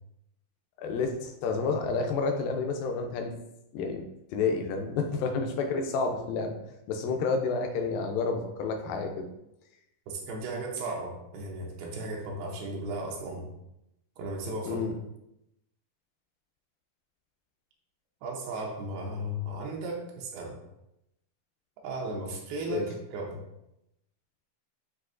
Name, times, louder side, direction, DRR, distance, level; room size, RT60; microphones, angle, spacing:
voice 1, 0.8-3.3 3.7-4.0 4.3-6.6 6.9-9.3 14.7-14.9 22.7-22.9, left 4 dB, 80° left, 4 dB, 2.1 m, -30 dB
voice 2, 10.1-13.5 14.2-14.8 18.2-20.6 21.8-23.4, right 1 dB, 80° right, -1 dB, 2.6 m, -35 dB
8.0 x 2.7 x 2.4 m, 0.84 s
omnidirectional pair, 4.4 m